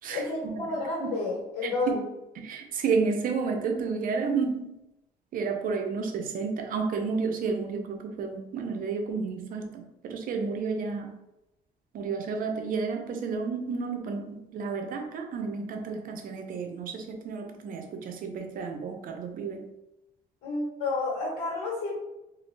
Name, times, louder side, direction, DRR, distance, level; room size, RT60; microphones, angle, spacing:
voice 1, 0.1-2.0 20.4-21.9, left 3 dB, 80° left, -4 dB, 1.2 m, -30 dB
voice 2, 2.4-4.7 5.3-11.2 11.9-19.6, right 5 dB, 55° right, 4 dB, 0.6 m, -31 dB
3.0 x 2.5 x 3.1 m, 0.91 s
cardioid pair, 110°, 17 cm